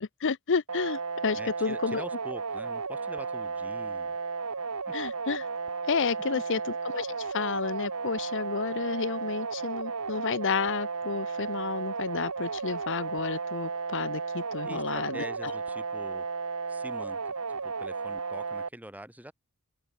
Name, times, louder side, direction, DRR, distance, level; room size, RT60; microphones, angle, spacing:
voice 1, 0.0-2.0 4.9-5.5 5.9-6.6 6.8-15.5, left 5 dB, 55° left, 0.7 m, -31 dB
sound 1, 0.7-18.7, right 4 dB, 85° right, 1.6 m, -34 dB
voice 2, 1.3-4.2 14.6-16.3 16.7-19.3, right 1 dB, 5° right, 3.9 m, -44 dB
open air
head